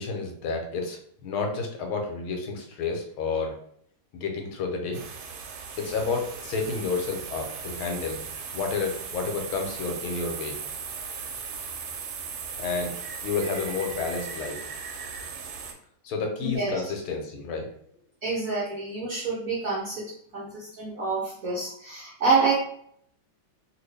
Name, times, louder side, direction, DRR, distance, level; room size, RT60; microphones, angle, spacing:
voice 1, 0.0-3.5 4.1-5.0 5.8-8.2 8.5-10.6 12.6-13.0 13.2-14.6 15.2-15.3 16.0-17.7, left 4 dB, 80° left, 3 dB, 1.5 m, -30 dB
sound 1, 4.9-15.7, right 5 dB, 80° right, 1.4 m, -37 dB
voice 2, 16.4-16.8 18.2-22.5, right 4 dB, 60° right, -5 dB, 0.9 m, -27 dB
3.0 x 2.8 x 3.3 m, 0.66 s
omnidirectional pair, 2.3 m